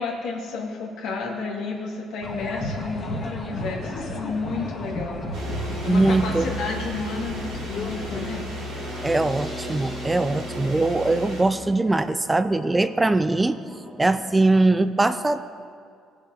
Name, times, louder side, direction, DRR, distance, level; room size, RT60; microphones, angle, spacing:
voice 1, 0.0-5.2 5.5-8.5, left 4 dB, 75° left, -1 dB, 2.1 m, -31 dB
sound 1, 2.2-8.4, left 1 dB, 35° left, 2.1 m, -33 dB
sound 2, 5.3-11.4, equal, 75° right, 3.5 m, -34 dB
voice 2, 5.9-6.5 9.0-13.6 14.0-15.4, right 2 dB, 15° right, 12 dB, 0.5 m, -21 dB
sound 3, 8.3-14.3, equal, 5° left, 1.8 m, -40 dB
17.5 x 6.5 x 4.8 m, 2.2 s
supercardioid pair, 75°, 0 cm